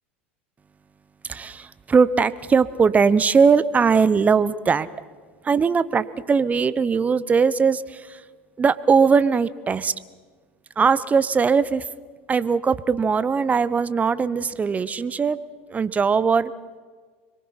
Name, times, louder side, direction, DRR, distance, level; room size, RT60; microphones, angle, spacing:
voice 1, 1.3-4.9 5.4-8.2 8.6-9.9 10.8-11.9 12.3-15.4 15.7-16.5, right 5 dB, 20° right, 17 dB, 0.9 m, -20 dB
25.5 x 23.0 x 5.7 m, 1.5 s
hypercardioid pair, 90°, 7 cm